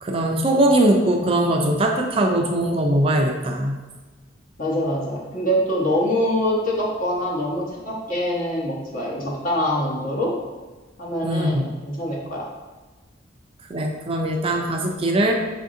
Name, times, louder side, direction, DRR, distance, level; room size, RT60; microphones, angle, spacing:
voice 1, 0.0-3.8 11.2-11.6 13.7-15.3, right 1 dB, 30° right, 1 dB, 0.4 m, -20 dB
voice 2, 4.6-10.4 11.0-12.5, equal, 45° left, -3 dB, 1.0 m, -24 dB
5.0 x 2.6 x 3.6 m, 1.2 s
head